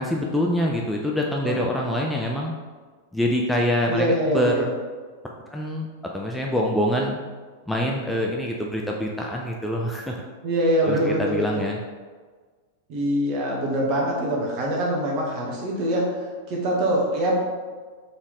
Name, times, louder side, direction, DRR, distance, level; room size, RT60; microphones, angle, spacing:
voice 1, 0.0-2.5 3.1-4.7 5.5-5.9 6.1-7.2 7.7-10.2 10.8-11.8, equal, 5° left, -1 dB, 0.5 m, -25 dB
voice 2, 3.9-4.7 10.4-11.5 12.9-16.0 16.5-17.3, right 1 dB, 45° right, -2 dB, 1.2 m, -24 dB
4.2 x 3.5 x 3.1 m, 1.5 s
figure-of-eight pair, 95°, 0 cm